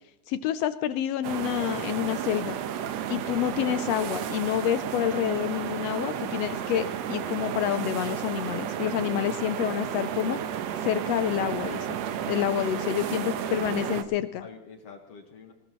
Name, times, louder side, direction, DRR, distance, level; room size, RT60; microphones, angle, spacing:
voice 1, 0.3-2.6 3.1-10.4 10.8-12.0 12.3-14.4, left 11 dB, 90° left, 11 dB, 1.4 m, -28 dB
sound 1, 1.2-14.0, right 9 dB, 70° right, 1.9 m, -32 dB
voice 2, 12.5-14.0 14.4-15.5, left 4 dB, 55° left, 4 dB, 2.3 m, -45 dB
19.5 x 18.5 x 3.1 m, 0.88 s
omnidirectional pair, 3.6 m